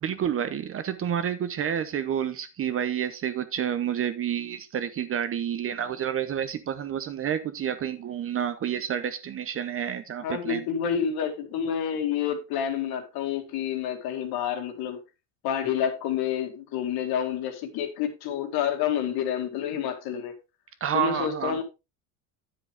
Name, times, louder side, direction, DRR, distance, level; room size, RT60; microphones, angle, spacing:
voice 1, 0.0-10.7 20.8-21.6, right 9 dB, 30° right, 0.8 m, -29 dB
voice 2, 10.2-15.0 15.4-20.3 20.9-21.6, left 8 dB, 55° left, 2.1 m, -28 dB
9.8 x 7.7 x 3.4 m
supercardioid pair, 125°, 45 cm